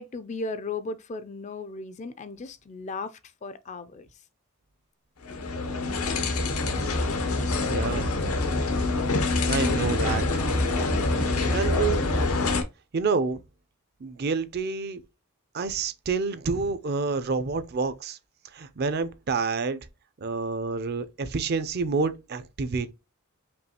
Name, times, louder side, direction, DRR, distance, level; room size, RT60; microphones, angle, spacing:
voice 1, 0.0-4.1, left 3 dB, 35° left, 0.4 m, -36 dB
sound 1, 5.2-12.6, left 2 dB, 85° left, 0.8 m, -25 dB
voice 2, 7.7-8.2 9.5-10.4 11.2-12.1 12.9-13.4 14.0-15.0 15.5-18.2 18.5-19.8 20.2-22.9, right 4 dB, 45° right, 0.5 m, -28 dB
5.3 x 2.4 x 2.8 m
head